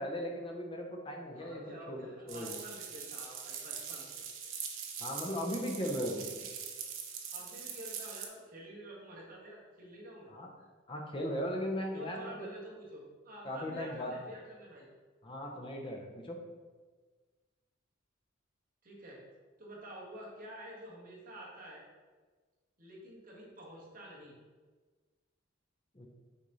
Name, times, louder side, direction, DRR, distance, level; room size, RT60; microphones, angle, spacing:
voice 1, 0.0-1.6 1.9-2.6 5.0-6.3 10.3-10.5 10.9-12.5 13.4-14.1 15.2-16.4 25.9-26.1, equal, 25° left, 1 dB, 0.7 m, -37 dB
voice 2, 1.3-4.2 7.3-10.3 10.6-10.7 11.9-14.9 18.8-19.2 19.6-21.8 22.8-24.3, right 1 dB, 45° right, -4 dB, 1.8 m, -49 dB
sound 1, 2.3-8.3, right 7 dB, 90° right, 0.9 m, -42 dB
6.3 x 4.2 x 4.0 m, 1.4 s
head